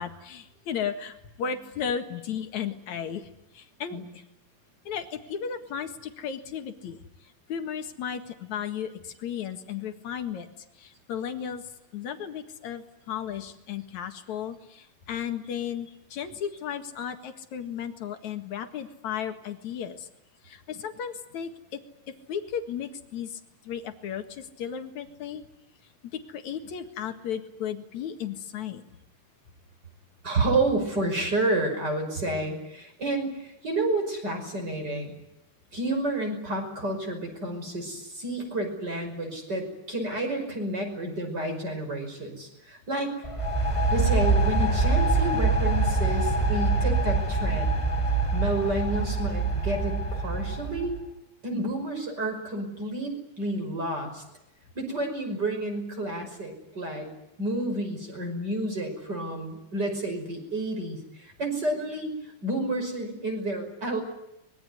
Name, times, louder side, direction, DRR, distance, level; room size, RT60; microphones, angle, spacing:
voice 1, 0.0-3.3 3.5-4.2 4.8-11.6 11.9-20.1 20.4-21.8 22.1-25.4 26.1-28.8 51.5-51.6, left 8 dB, 55° left, 8 dB, 2.7 m, -35 dB
voice 2, 1.4-1.7 3.9-4.1 30.2-35.2 35.7-43.1 43.9-47.8 48.3-51.0 51.4-54.2 54.8-57.1 57.4-64.0, right 2 dB, 25° right, 4 dB, 6.1 m, -30 dB
sound 1, 43.2-51.0, right 3 dB, 10° left, 2.0 m, -25 dB
24.5 x 21.5 x 9.6 m, 0.85 s
omnidirectional pair, 4.5 m